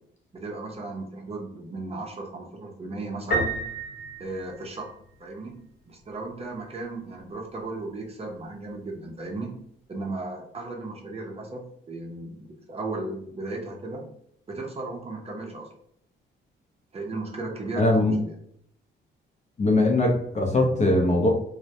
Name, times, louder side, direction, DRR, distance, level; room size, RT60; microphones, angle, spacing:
voice 1, 0.3-3.6 4.2-4.9 5.2-5.6 5.9-9.5 9.9-14.0 14.5-15.7 16.9-18.3, right 2 dB, 30° right, 0 dB, 0.6 m, -35 dB
Piano, 3.3-5.1, right 2 dB, 50° left, 1.0 m, -30 dB
voice 2, 17.8-18.1 19.6-21.3, left 2 dB, 35° left, 1 dB, 0.6 m, -21 dB
2.1 x 2.1 x 2.7 m, 0.69 s
cardioid pair, 90°, 20 cm